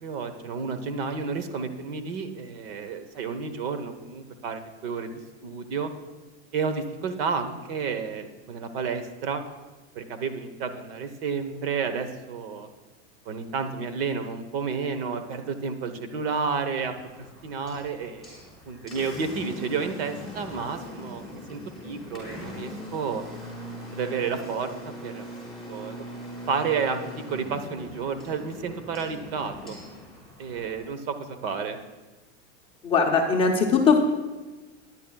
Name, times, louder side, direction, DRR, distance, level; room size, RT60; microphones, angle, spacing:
voice 1, 0.0-5.9 6.5-9.4 9.9-12.7 13.3-18.4 18.7-23.2 23.9-26.0 26.5-27.0 27.3-29.8 30.4-31.8, right 5 dB, 55° right, 9 dB, 1.0 m, -31 dB
Engine, 16.8-30.8, left 1 dB, ahead, 3.9 m, -41 dB
voice 2, 32.8-34.0, left 5 dB, 15° left, 0 dB, 0.6 m, -20 dB
19.5 x 10.0 x 2.3 m, 1.2 s
supercardioid pair, 170°, 35 cm